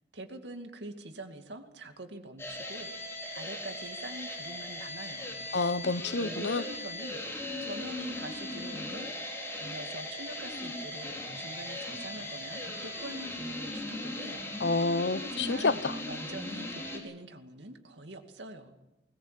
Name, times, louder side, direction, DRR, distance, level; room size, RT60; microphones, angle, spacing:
voice 1, 0.1-2.9 3.3-5.4 6.2-9.1 9.6-14.5 15.2-15.7 16.1-18.7, right 1 dB, 85° right, 5 dB, 2.4 m, -44 dB
sound 1, 2.4-17.0, left 1 dB, 15° left, 4.5 m, -38 dB
voice 2, 5.5-6.6 14.6-16.0, left 3 dB, 70° left, 15 dB, 0.9 m, -28 dB
20.5 x 19.5 x 7.6 m, 0.97 s
head